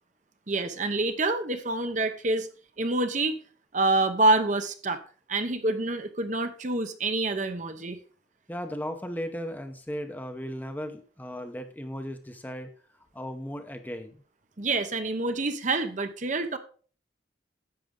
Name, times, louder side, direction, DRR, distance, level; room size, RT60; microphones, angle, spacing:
voice 1, 0.5-2.5 2.8-3.4 3.7-5.0 5.3-8.0 14.6-16.6, right 2 dB, 40° right, 8 dB, 0.9 m, -27 dB
voice 2, 8.5-12.7 13.1-14.2, equal, 10° left, 7 dB, 0.8 m, -36 dB
10.5 x 7.5 x 3.8 m, 0.41 s
head